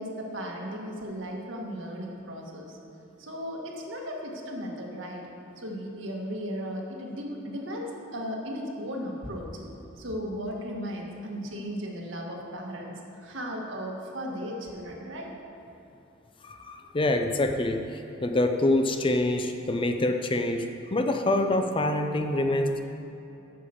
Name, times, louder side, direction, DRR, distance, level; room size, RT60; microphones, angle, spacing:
voice 1, 0.0-2.8 3.2-5.3 5.6-9.6 10.0-15.3, equal, 80° right, -1 dB, 1.6 m, -36 dB
voice 2, 16.4-22.8, left 1 dB, 25° left, 6 dB, 0.6 m, -26 dB
8.6 x 6.8 x 7.1 m, 2.9 s
head